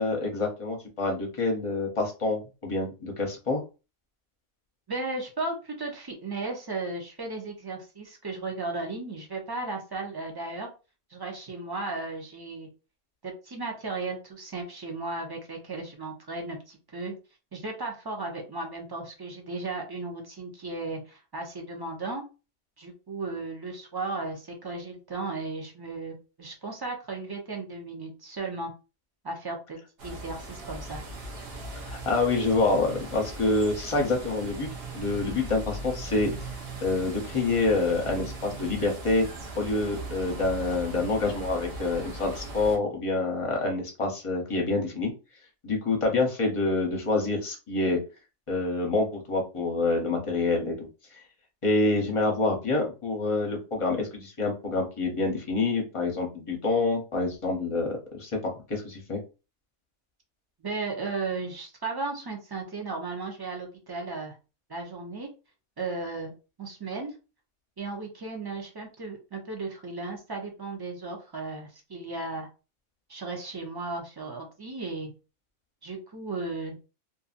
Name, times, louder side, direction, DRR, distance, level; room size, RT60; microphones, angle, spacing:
voice 1, 0.0-3.6 31.8-34.7 34.9-36.3 36.8-39.3 39.6-45.1 45.6-48.0 48.5-50.9 51.6-57.9 58.1-59.2, left 3 dB, 30° left, 0 dB, 0.7 m, -27 dB
voice 2, 4.9-10.7 11.1-12.7 13.2-17.1 17.5-22.2 22.8-28.7 29.2-31.0 60.6-64.4 64.7-65.3 65.8-66.3 66.6-67.1 67.8-72.5 73.1-75.1 75.8-76.8, right 3 dB, 25° right, 1 dB, 0.5 m, -35 dB
sound 1, 30.0-42.8, right 2 dB, 60° right, 0.9 m, -39 dB
2.6 x 2.6 x 2.5 m, 0.31 s
omnidirectional pair, 1.2 m